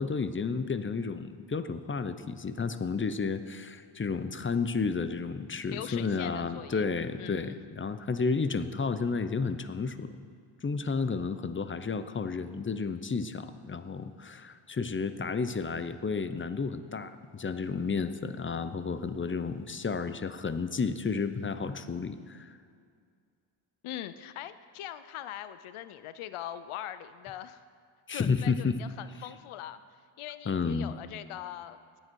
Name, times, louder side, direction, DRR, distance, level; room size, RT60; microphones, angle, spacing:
voice 1, 0.0-10.2 10.6-22.6 28.1-28.8 30.5-30.9, left 5 dB, 25° left, 11 dB, 0.6 m, -32 dB
voice 2, 5.7-6.9 7.2-7.6 23.8-27.6 28.1-29.8 30.2-32.0, left 11 dB, 85° left, 13 dB, 0.6 m, -41 dB
15.0 x 9.7 x 4.6 m, 2.2 s
cardioid pair, 80°, 49 cm